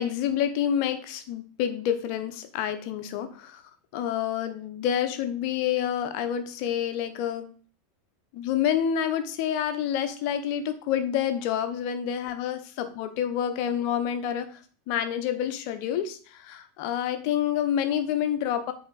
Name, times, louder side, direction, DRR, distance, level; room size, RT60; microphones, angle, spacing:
voice 1, 0.0-3.6 3.9-7.5 8.3-14.6 14.9-18.7, left 9 dB, 50° left, 9 dB, 0.9 m, -28 dB
7.9 x 3.5 x 4.0 m, 0.41 s
figure-of-eight pair, 85°, 0 cm